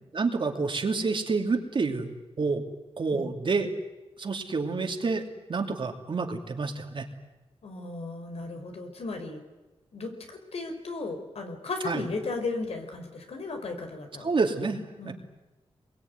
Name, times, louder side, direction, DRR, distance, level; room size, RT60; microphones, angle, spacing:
voice 1, 0.1-2.6 3.0-3.7 4.2-5.2 5.5-7.0 11.8-12.1 14.2-15.1, right 4 dB, 55° right, 4 dB, 2.8 m, -28 dB
voice 2, 7.6-9.4 9.9-14.3 15.0-15.1, left 3 dB, 80° left, 5 dB, 4.7 m, -35 dB
26.5 x 22.0 x 9.6 m, 1.1 s
wide cardioid pair, 120°, 10 cm